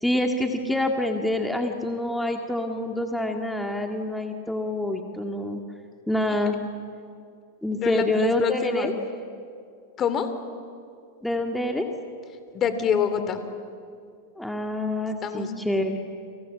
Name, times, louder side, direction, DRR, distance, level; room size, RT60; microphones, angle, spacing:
voice 1, 0.0-5.6 6.1-6.6 7.6-8.9 11.2-11.9 14.4-16.0, left 1 dB, 5° left, 2 dB, 2.1 m, -26 dB
voice 2, 7.8-8.9 10.0-10.3 12.5-13.4 15.2-15.5, left 7 dB, 35° left, 10 dB, 3.1 m, -26 dB
30.0 x 26.5 x 7.6 m, 2.3 s
hypercardioid pair, 100°, 0 cm